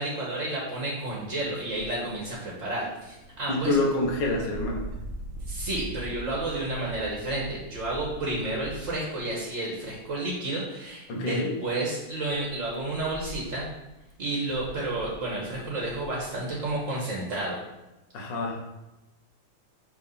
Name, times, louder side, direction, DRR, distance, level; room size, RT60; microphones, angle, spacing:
voice 1, 0.0-3.8 5.5-13.7 14.2-17.6, right 2 dB, 40° right, -4 dB, 1.5 m, -31 dB
sound 1, 1.0-9.4 9.8-10.2 10.8-10.9 11.7-16.7, right 1 dB, 75° right, 1.8 m, -43 dB
voice 2, 3.5-4.9 11.1-11.6 18.1-18.6, left 2 dB, 60° left, -1 dB, 1.7 m, -27 dB
6.0 x 3.5 x 5.6 m, 0.98 s
omnidirectional pair, 2.2 m